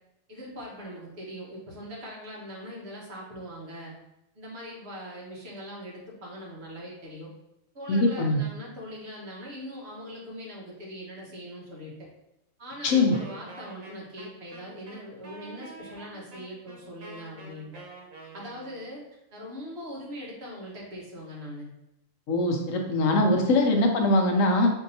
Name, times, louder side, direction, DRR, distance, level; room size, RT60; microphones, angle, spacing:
voice 1, 0.3-3.9 4.3-7.3 7.7-11.9 12.6-17.8 18.3-19.0 19.3-21.7 23.5-23.8, equal, 50° right, -4 dB, 1.3 m, -41 dB
voice 2, 7.9-8.4 12.8-13.2 22.3-24.7, left 2 dB, 75° left, 3 dB, 1.0 m, -22 dB
Wind instrument woodwind instrument, 13.1-18.9, right 3 dB, 85° right, 1.3 m, -47 dB
5.2 x 2.7 x 2.6 m, 0.86 s
omnidirectional pair, 1.4 m